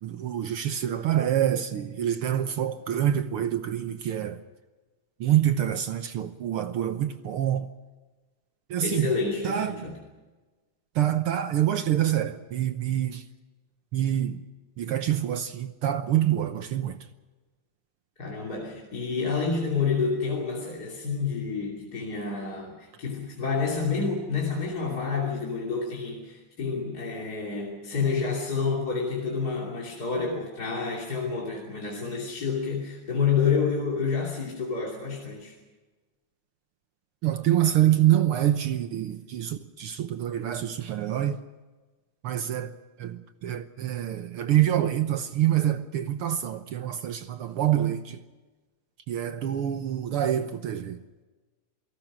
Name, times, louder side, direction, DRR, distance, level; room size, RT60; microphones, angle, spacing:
voice 1, 0.0-4.4 5.2-7.7 8.7-9.1 9.4-9.9 10.9-13.2 13.9-14.4 14.8-17.0 37.2-41.4 42.2-42.7 43.0-48.2 49.1-51.0, right 11 dB, 65° right, 1.5 m, -26 dB
voice 2, 8.8-10.0 18.2-35.6, left 5 dB, 35° left, 3.2 m, -29 dB
28.5 x 18.0 x 6.1 m
omnidirectional pair, 3.3 m